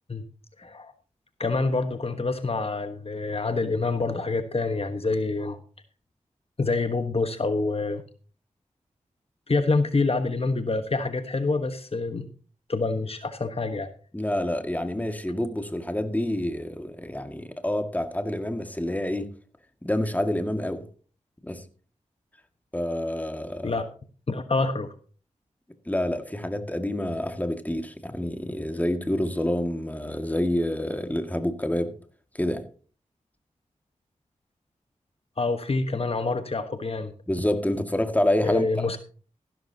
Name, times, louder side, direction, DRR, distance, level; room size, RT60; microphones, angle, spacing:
voice 1, 0.6-0.9 1.4-5.6 6.6-8.0 9.5-12.3 12.7-13.9 23.6-23.8 24.3-24.9 35.4-37.1 38.4-39.0, left 3 dB, 50° left, 1.3 m, -26 dB
voice 2, 14.1-19.3 19.8-20.8 21.4-21.6 22.7-23.8 25.9-32.0 32.3-32.6 37.3-38.7, left 1 dB, 10° left, 2.0 m, -27 dB
14.5 x 12.5 x 2.9 m
cardioid pair, 45°, 13 cm